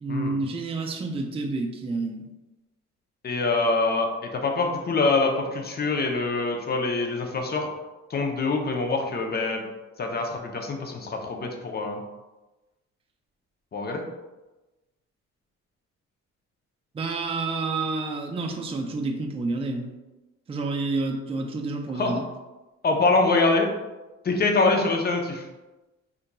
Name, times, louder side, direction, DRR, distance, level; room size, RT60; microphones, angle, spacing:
voice 1, 0.0-2.2 16.9-19.9 20.5-22.2, right 3 dB, 20° right, 2 dB, 0.4 m, -29 dB
voice 2, 3.2-7.7 8.1-9.6 10.0-12.0 13.7-14.0 21.9-22.2 22.8-23.7 24.2-25.5, left 3 dB, 35° left, 3 dB, 0.6 m, -24 dB
3.7 x 2.8 x 2.2 m, 1.1 s
cardioid pair, 90°, 30 cm